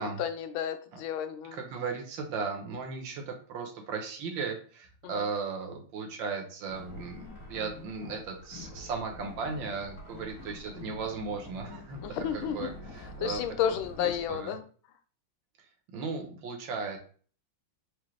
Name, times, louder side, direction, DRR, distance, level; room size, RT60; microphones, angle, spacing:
voice 1, 0.0-1.6 5.0-5.3 12.0-12.7 13.2-14.6, left 9 dB, 90° left, 9 dB, 1.4 m, -32 dB
voice 2, 1.5-13.4 14.0-14.5 15.9-17.0, right 5 dB, 70° right, 3 dB, 1.6 m, -36 dB
sound 1, 6.7-14.4, left 2 dB, 40° left, 2.4 m, -46 dB
4.9 x 2.7 x 3.2 m, 0.42 s
omnidirectional pair, 2.2 m